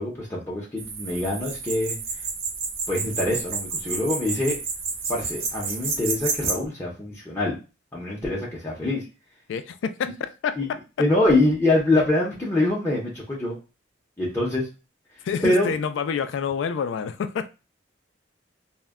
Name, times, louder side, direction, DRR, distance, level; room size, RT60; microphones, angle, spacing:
voice 1, 0.0-2.0 2.9-4.6 5.1-7.6 7.9-9.0 10.6-10.7 11.0-13.6 14.2-14.7 15.4-15.7, left 2 dB, 10° left, 0.5 m, -24 dB
sound 1, 0.8-6.5, right 4 dB, 50° right, 0.6 m, -30 dB
voice 2, 9.5-10.8 15.2-17.5, left 6 dB, 70° left, 0.3 m, -28 dB
2.1 x 2.1 x 3.4 m
head